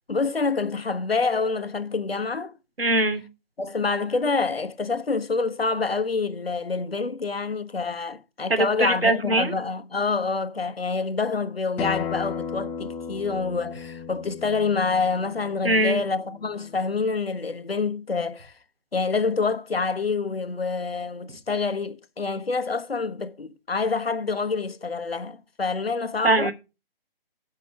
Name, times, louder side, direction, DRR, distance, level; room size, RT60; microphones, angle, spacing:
voice 1, 0.1-2.5 3.6-18.5 18.9-26.5, left 4 dB, 80° left, 1.4 m, -27 dB
voice 2, 2.8-3.2 8.5-9.5 15.6-16.0 26.2-26.5, right 2 dB, 80° right, 2.9 m, -21 dB
Acoustic guitar, 11.8-17.0, left 7 dB, 5° left, 0.6 m, -35 dB
7.8 x 6.2 x 7.9 m
figure-of-eight pair, 140°, 30 cm